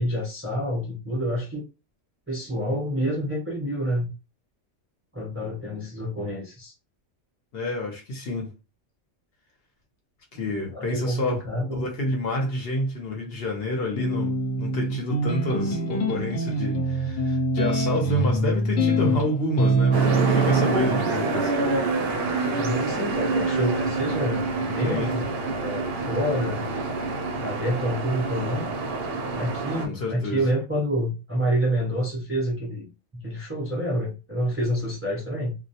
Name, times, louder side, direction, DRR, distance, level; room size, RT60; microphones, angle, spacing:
voice 1, 0.0-1.7 2.3-4.1 5.1-6.7 10.7-11.9 22.5-25.2 25.6-26.7 27.4-28.7 29.3-35.6, equal, 20° right, 0.3 m, -28 dB
voice 2, 7.5-8.5 10.3-11.4 11.7-21.5 24.8-25.1 29.8-30.5, left 1 dB, 60° left, 0.8 m, -29 dB
sound 1, 13.9-21.0, right 1 dB, 85° left, 1.0 m, -24 dB
sound 2, 19.9-29.9, right 3 dB, 65° right, 0.7 m, -27 dB
2.2 x 2.1 x 2.7 m
omnidirectional pair, 1.3 m